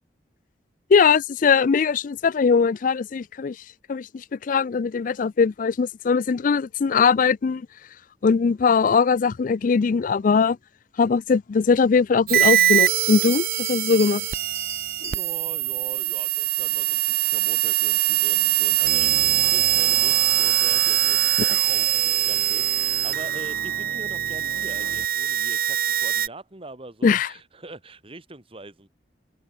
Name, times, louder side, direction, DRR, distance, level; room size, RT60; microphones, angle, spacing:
voice 1, 0.9-3.6 3.9-7.7 8.2-10.6 11.0-14.3 27.0-27.3, left 5 dB, 50° left, 0.4 m, -20 dB
sound 1, 12.3-26.3, right 13 dB, 55° right, 0.9 m, -22 dB
Bell, 12.9-15.7, right 4 dB, 15° right, 1.5 m, -38 dB
voice 2, 15.0-28.9, right 2 dB, 30° right, 2.2 m, -42 dB
sound 2, 18.8-25.1, right 5 dB, 90° right, 0.6 m, -39 dB
head